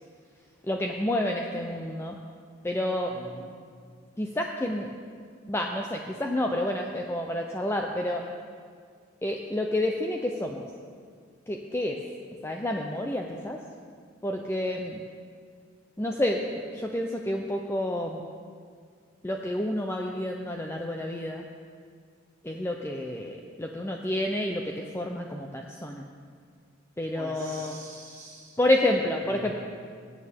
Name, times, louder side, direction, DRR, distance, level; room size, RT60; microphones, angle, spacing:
voice 1, 0.7-2.2 2.6-3.1 4.2-4.9 5.5-8.2 9.2-10.6 11.5-11.9 12.4-13.6 14.2-15.0 16.0-18.2 19.2-21.4 22.4-26.0 27.0-27.8 28.6-29.5, left 1 dB, 10° left, 1 dB, 0.5 m, -29 dB
voice 2, 3.1-3.5 27.1-28.6 29.2-29.5, right 1 dB, 20° right, -5 dB, 3.0 m, -44 dB
20.0 x 8.7 x 3.5 m, 2.1 s
head